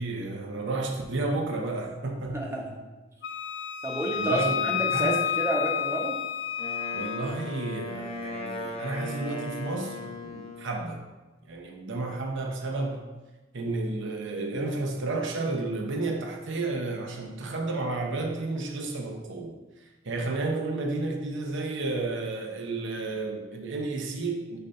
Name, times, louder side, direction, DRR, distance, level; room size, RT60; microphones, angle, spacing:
voice 1, 0.0-2.5 4.1-5.2 6.9-11.0 11.5-13.0 13.5-19.5 20.0-24.6, right 2 dB, 65° right, 2 dB, 0.8 m, -32 dB
voice 2, 2.3-2.8 3.8-6.2, right 1 dB, 15° right, -1 dB, 0.9 m, -30 dB
Wind instrument woodwind instrument, 3.2-7.3, left 8 dB, 60° left, 0.3 m, -30 dB
Wind instrument woodwind instrument 2, 6.6-10.8, left 1 dB, 30° left, 0.8 m, -37 dB
6.7 x 2.7 x 5.6 m, 1.2 s
head